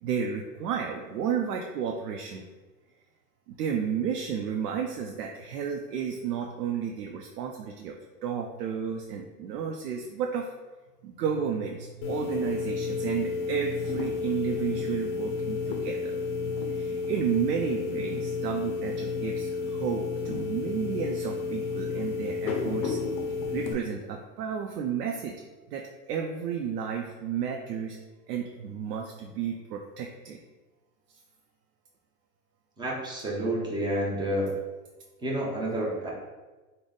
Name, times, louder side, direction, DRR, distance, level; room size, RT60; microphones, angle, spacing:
voice 1, 0.0-2.4 3.5-10.5 11.0-16.2 16.7-23.0 23.5-25.3 25.7-28.0 28.3-30.4, right 7 dB, 75° right, 2 dB, 0.6 m, -32 dB
sound 1, 12.0-23.7, left 4 dB, 30° left, 0.6 m, -31 dB
voice 2, 32.8-34.5 35.2-36.1, right 1 dB, 10° right, -3 dB, 0.6 m, -29 dB
3.4 x 2.1 x 3.9 m, 1.2 s
hypercardioid pair, 110°, 48 cm